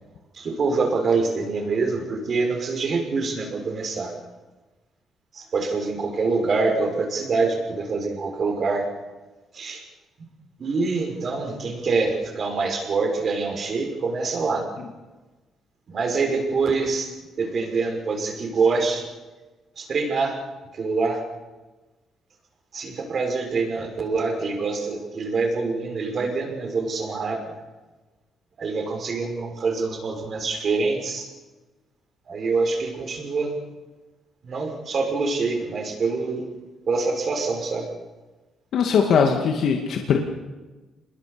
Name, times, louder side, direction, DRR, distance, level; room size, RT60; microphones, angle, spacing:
voice 1, 0.3-4.1 5.3-8.9 9.5-9.8 10.6-14.7 15.9-17.1 17.4-19.1 19.8-20.4 20.7-21.2 22.7-27.4 28.6-31.3 32.3-33.6 34.4-36.5 36.9-37.9, right 4 dB, 50° right, 2 dB, 6.4 m, -25 dB
voice 2, 38.7-40.2, left 6 dB, 70° left, 3 dB, 2.3 m, -20 dB
27.0 x 21.5 x 7.0 m, 1.2 s
cardioid pair, 90°, 0 cm